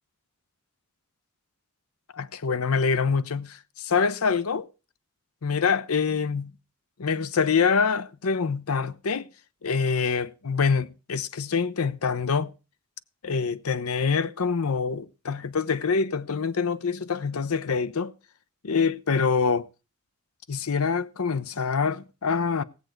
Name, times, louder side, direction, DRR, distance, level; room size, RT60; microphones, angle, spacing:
voice 1, 2.1-4.7 5.4-6.5 7.0-9.3 9.6-12.5 13.2-18.1 18.6-19.7 20.5-22.6, left 5 dB, 85° left, 0.7 m, -25 dB
17.0 x 7.9 x 4.5 m
head